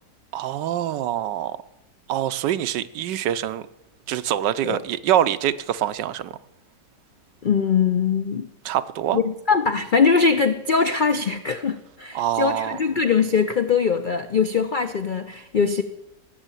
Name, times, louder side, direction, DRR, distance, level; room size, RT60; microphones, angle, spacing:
voice 1, 0.3-1.6 2.1-3.7 4.1-6.3 8.6-9.2 12.1-12.8, right 11 dB, 85° right, 14 dB, 1.3 m, -24 dB
voice 2, 7.4-8.5 9.1-15.8, left 5 dB, 75° left, 9 dB, 0.4 m, -21 dB
16.5 x 7.1 x 9.1 m, 0.93 s
omnidirectional pair, 1.8 m